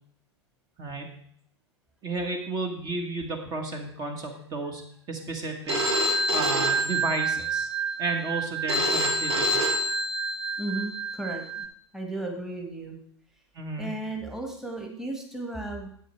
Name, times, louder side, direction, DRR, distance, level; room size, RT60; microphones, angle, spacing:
voice 1, 2.0-4.8 5.1-5.8 6.3-7.7 8.0-9.6 13.6-13.9, right 3 dB, 25° right, 3 dB, 1.6 m, -32 dB
Telephone, 5.7-11.7, right 1 dB, 65° right, 2.2 m, -27 dB
voice 2, 10.6-11.7 11.9-13.0 13.8-15.9, right 2 dB, 5° right, 1 dB, 1.7 m, -34 dB
10.0 x 8.3 x 4.6 m, 0.64 s
figure-of-eight pair, 100°, 15 cm